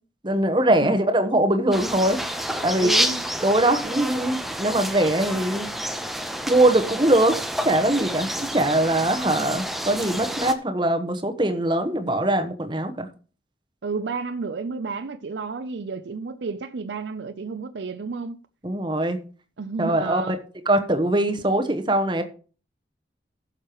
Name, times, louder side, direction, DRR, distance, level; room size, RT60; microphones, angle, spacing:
voice 1, 0.2-2.2 2.6-2.9 3.4-5.7 6.5-7.4 7.6-13.1 18.6-19.2 19.8-20.3 20.7-22.2, right 1 dB, 25° right, 1.1 m, -22 dB
sound 1, 1.7-10.5, equal, ahead, 0.8 m, -29 dB
voice 2, 2.8-3.2 13.8-18.4 19.6-20.4, right 4 dB, 80° right, 0.5 m, -31 dB
16.0 x 6.6 x 3.0 m
head